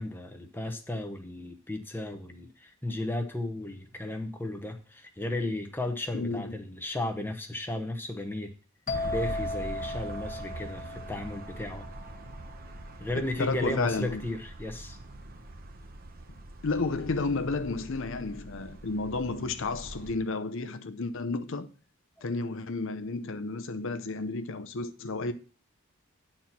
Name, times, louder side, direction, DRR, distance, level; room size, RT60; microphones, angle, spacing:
voice 1, 0.0-8.5 9.0-11.8 13.0-15.0 22.2-22.3, left 1 dB, 10° left, 1.0 m, -34 dB
voice 2, 6.1-6.6 13.4-14.3 16.3-21.7 22.2-25.3, left 3 dB, 60° left, 0.7 m, -32 dB
sound 1, 8.9-12.5, left 2 dB, 35° left, 1.5 m, -37 dB
sound 2, 8.9-20.2, right 2 dB, 45° right, 0.8 m, -43 dB
9.4 x 4.4 x 5.8 m
head